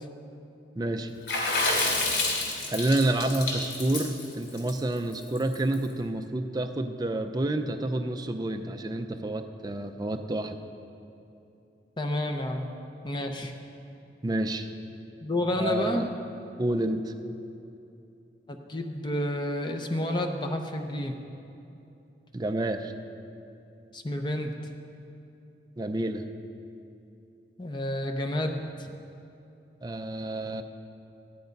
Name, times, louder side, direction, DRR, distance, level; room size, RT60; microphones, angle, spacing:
voice 1, 0.8-1.1 2.7-10.6 14.2-14.7 15.6-16.1 16.6-17.1 22.3-22.9 25.8-26.2 29.8-30.6, right 1 dB, 20° right, 6 dB, 0.5 m, -29 dB
Water / Splash splatter, 1.3-5.7, left 2 dB, 75° left, 3.2 m, -28 dB
voice 2, 12.0-12.7 13.0-13.5 15.2-16.0 18.5-21.2 23.9-24.5 27.6-28.9, left 1 dB, 25° left, 4 dB, 0.7 m, -30 dB
14.5 x 10.5 x 5.3 m, 2.8 s
head